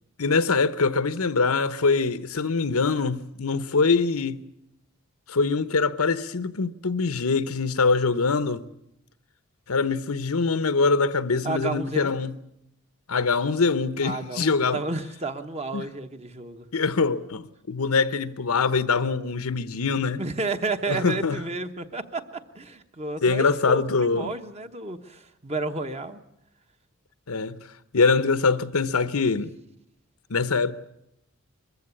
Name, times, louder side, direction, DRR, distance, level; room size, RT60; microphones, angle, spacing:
voice 1, 0.2-4.4 5.3-8.6 9.7-12.3 13.1-14.8 15.7-15.8 16.7-20.2 20.9-21.4 23.2-24.3 27.3-27.6 27.9-29.5 30.3-30.7, left 4 dB, 80° left, 0.9 m, -23 dB
voice 2, 11.4-12.3 14.0-16.7 20.2-26.2, right 3 dB, 30° right, 1.1 m, -32 dB
22.0 x 15.0 x 9.8 m
head